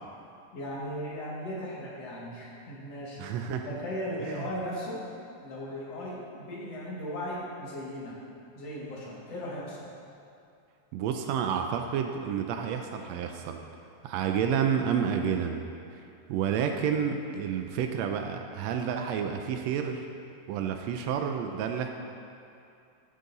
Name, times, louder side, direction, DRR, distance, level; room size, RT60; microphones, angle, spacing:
voice 1, 0.5-3.2 3.6-5.0 5.4-8.2 8.6-9.9, equal, 55° left, -6 dB, 2.7 m, -37 dB
voice 2, 3.2-3.7 4.2-4.5 10.9-13.6 14.0-15.6 15.9-16.0 16.3-20.1 20.5-21.9, right 7 dB, 90° right, 5 dB, 1.5 m, -30 dB
13.5 x 6.6 x 4.0 m, 2.5 s
omnidirectional pair, 3.6 m